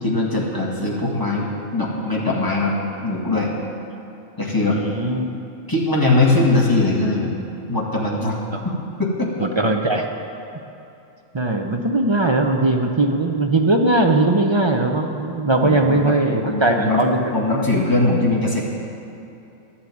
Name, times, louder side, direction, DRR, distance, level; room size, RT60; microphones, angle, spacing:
voice 1, 0.0-2.8 3.0-3.5 4.4-4.8 5.7-7.4 7.7-8.4 8.6-9.3 15.6-16.2 16.4-17.0 17.3-18.6, left 2 dB, 15° left, -4 dB, 1.8 m, -21 dB
voice 2, 4.7-5.3 8.5-8.6 9.4-10.0 11.3-17.6, right 2 dB, 40° right, 2 dB, 0.4 m, -19 dB
11.0 x 7.3 x 8.6 m, 2.8 s
omnidirectional pair, 1.5 m